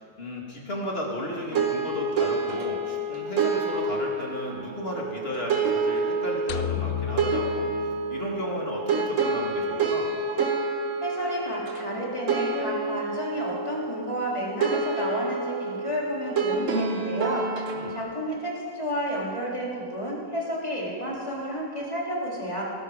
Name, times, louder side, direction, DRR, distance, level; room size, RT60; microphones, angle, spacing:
voice 1, 0.2-10.1 17.7-18.0, left 1 dB, 35° left, -2 dB, 2.6 m, -34 dB
sound 1, 1.5-18.0, right 4 dB, 55° right, 1.4 m, -28 dB
sound 2, 6.5-8.8, left 11 dB, 65° left, 0.7 m, -33 dB
voice 2, 11.0-17.5 17.9-22.6, equal, 20° left, -5 dB, 3.4 m, -31 dB
20.0 x 12.0 x 5.1 m, 2.3 s
omnidirectional pair, 1.7 m